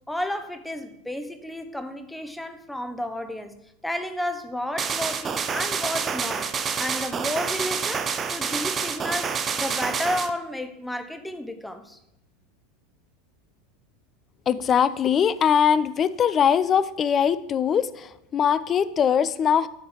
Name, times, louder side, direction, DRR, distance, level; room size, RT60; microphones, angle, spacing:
voice 1, 0.1-3.5 3.8-6.5 6.8-12.0, left 1 dB, 5° left, 8 dB, 0.8 m, -32 dB
sound 1, 4.8-10.3, right 6 dB, 25° right, 0.5 m, -28 dB
voice 2, 14.5-19.7, left 8 dB, 30° left, 15 dB, 0.4 m, -21 dB
7.7 x 4.0 x 6.4 m, 0.84 s
figure-of-eight pair, 80°, 0 cm